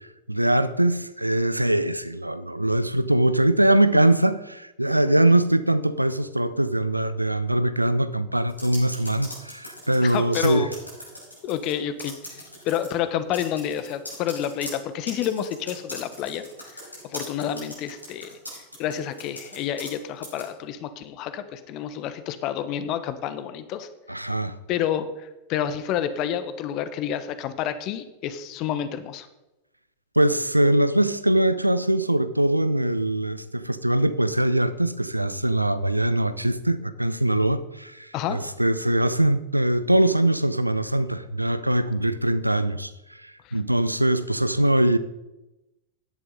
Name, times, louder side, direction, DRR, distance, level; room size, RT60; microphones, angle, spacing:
voice 1, 0.3-10.7 24.1-24.6 30.2-45.0, right 1 dB, 85° right, 0.7 m, -22 dB
sound 1, 8.5-11.7 12.0-12.9 13.3-20.0 20.2-20.5, left 1 dB, 85° left, 5.7 m, -39 dB
voice 2, 10.0-10.7 11.4-16.4 16.7-18.4 18.8-23.9 24.7-29.3 38.1-38.4 43.4-43.6, left 10 dB, 40° left, 1.3 m, -29 dB
16.0 x 11.0 x 4.0 m
figure-of-eight pair, 90°, 0 cm